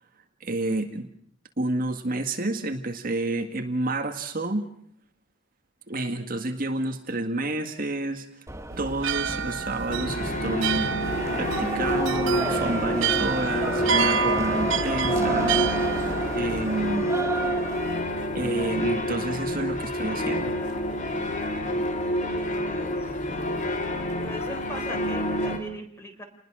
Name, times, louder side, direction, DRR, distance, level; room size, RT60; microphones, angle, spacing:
voice 1, 0.4-1.1 1.6-4.7 5.9-8.4 8.8-17.1 18.3-20.5, right 2 dB, 45° right, 5 dB, 1.9 m, -30 dB
sound 1, 8.5-18.0, right 2 dB, 15° right, 1.2 m, -33 dB
sound 2, 8.7-17.0, right 6 dB, 75° right, 1.0 m, -29 dB
sound 3, 9.9-25.6, equal, 40° left, 2.8 m, -28 dB
voice 2, 22.2-23.1 24.2-26.2, equal, 15° left, 6 dB, 3.9 m, -40 dB
29.5 x 20.5 x 6.3 m, 0.65 s
head